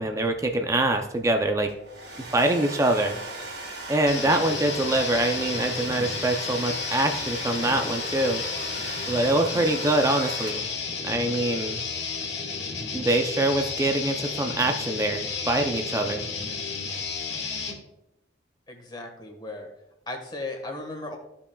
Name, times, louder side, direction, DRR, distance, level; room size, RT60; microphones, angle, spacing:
voice 1, 0.0-1.7 2.2-3.2 3.9-8.4 9.1-10.6 11.0-11.9 12.9-16.3, right 1 dB, 20° right, 4 dB, 0.5 m, -24 dB
Domestic sounds home sounds, 1.7-10.9, right 2 dB, 80° right, 2.6 m, -38 dB
sound 1, 4.1-17.8, left 5 dB, 85° left, 1.6 m, -32 dB
voice 2, 18.7-19.7 20.1-21.2, left 2 dB, 25° left, 3 dB, 1.5 m, -36 dB
14.0 x 5.7 x 2.3 m, 0.86 s
head